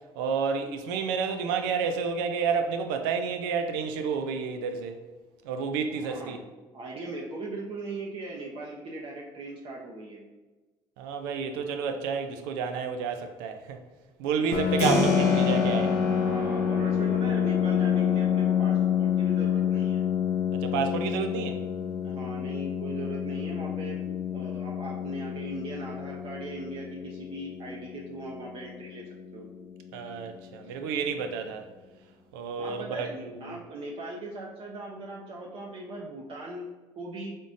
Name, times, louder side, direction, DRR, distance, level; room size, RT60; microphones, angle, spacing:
voice 1, 0.2-4.9 5.4-6.4 11.0-13.8 14.2-16.0 20.5-21.6 29.9-31.7 32.3-33.6, right 6 dB, 85° right, 0.4 m, -30 dB
voice 2, 6.0-6.5 6.7-10.2 14.3-14.9 16.1-20.0 22.0-24.0 24.3-29.5 32.6-36.7 37.0-37.4, right 2 dB, 50° right, 0.7 m, -39 dB
Piano, 14.5-29.9, left 9 dB, 60° left, 0.4 m, -28 dB
Keyboard (musical), 14.8-25.5, left 1 dB, 80° left, 0.8 m, -34 dB
3.9 x 3.6 x 2.6 m
supercardioid pair, 70°, 12 cm